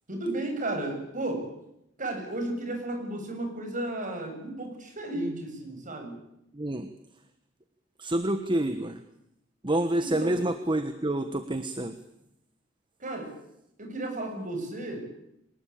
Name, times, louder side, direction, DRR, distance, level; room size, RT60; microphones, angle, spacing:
voice 1, 0.1-1.5 2.0-6.2 10.0-10.4 13.0-13.3 13.8-15.1, right 1 dB, 40° right, 4 dB, 7.6 m, -33 dB
voice 2, 6.5-6.9 8.0-9.0 9.6-12.0, right 1 dB, 25° right, 9 dB, 1.3 m, -28 dB
24.0 x 20.5 x 8.8 m, 0.80 s
head